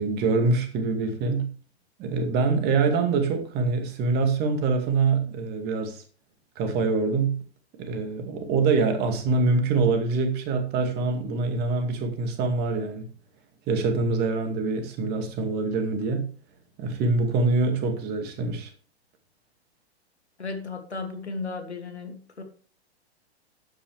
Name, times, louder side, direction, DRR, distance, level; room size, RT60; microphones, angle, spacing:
voice 1, 0.0-1.5 2.0-6.0 6.6-7.4 7.8-13.1 13.7-16.3 16.8-18.7, right 4 dB, 30° right, 2.3 m, -25 dB
voice 2, 20.4-22.4, left 4 dB, 80° left, 2.6 m, -35 dB
12.5 x 9.1 x 3.5 m
figure-of-eight pair, 105°, 33 cm